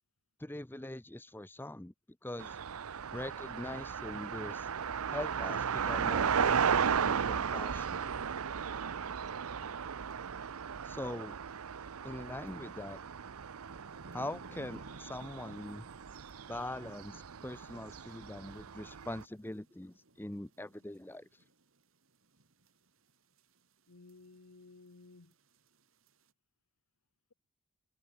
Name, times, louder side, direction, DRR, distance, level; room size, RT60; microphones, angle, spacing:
voice 1, 0.4-1.9 2.2-2.6 3.1-4.7 5.1-8.1 10.8-11.4 12.0-13.0 14.1-15.9 16.5-21.3, left 1 dB, 10° left, 0.6 m, -42 dB
sound 1, 2.4-19.2, right 7 dB, 90° right, 0.7 m, -35 dB
sound 2, 10.1-10.2 12.5-26.3, right 1 dB, 70° right, 2.6 m, -59 dB
voice 2, 23.9-25.3, left 3 dB, 85° left, 1.1 m, -56 dB
head